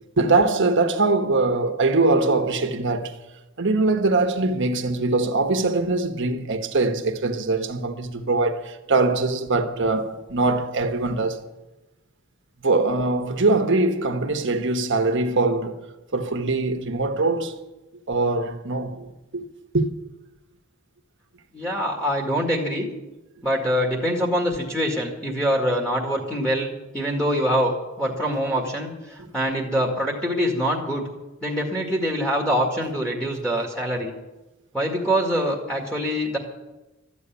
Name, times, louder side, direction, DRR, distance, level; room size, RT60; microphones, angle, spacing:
voice 1, 0.2-3.2 3.6-11.4 12.6-15.8 16.1-17.6 18.1-19.5 19.7-19.9, right 3 dB, 60° right, 1.3 m, -22 dB
voice 2, 21.5-22.9 23.4-31.1 31.4-34.1 34.7-36.4, equal, 5° left, 1.9 m, -24 dB
13.5 x 8.3 x 9.3 m
head